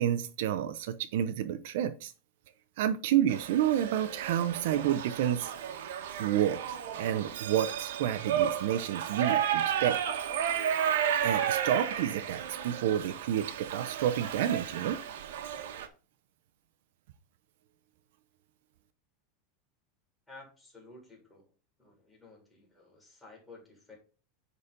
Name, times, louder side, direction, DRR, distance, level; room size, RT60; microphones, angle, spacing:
voice 1, 0.0-2.1 2.8-5.5 6.2-10.0 11.2-15.0, right 10 dB, 60° right, 10 dB, 0.7 m, -30 dB
Shout / Livestock farm animals working animals, 3.3-15.9, right 9 dB, 80° right, 1.4 m, -33 dB
voice 2, 20.3-21.5 21.8-24.0, left 3 dB, 5° left, -3 dB, 3.6 m, -53 dB
9.8 x 4.2 x 5.2 m, 0.35 s
supercardioid pair, 170°, 0 cm